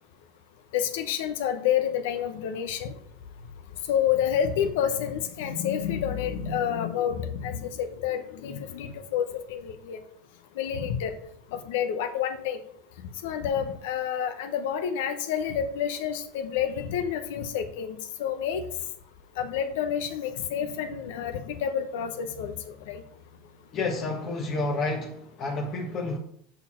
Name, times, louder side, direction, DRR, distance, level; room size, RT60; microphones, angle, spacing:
voice 1, 0.7-2.9 3.9-10.0 10.6-11.1 11.5-12.6 13.2-18.6 19.4-23.0, left 9 dB, 75° left, 9 dB, 0.9 m, -29 dB
voice 2, 23.7-26.2, left 2 dB, 45° left, 0 dB, 1.3 m, -30 dB
6.9 x 4.5 x 5.8 m, 0.66 s
supercardioid pair, 105°, 0 cm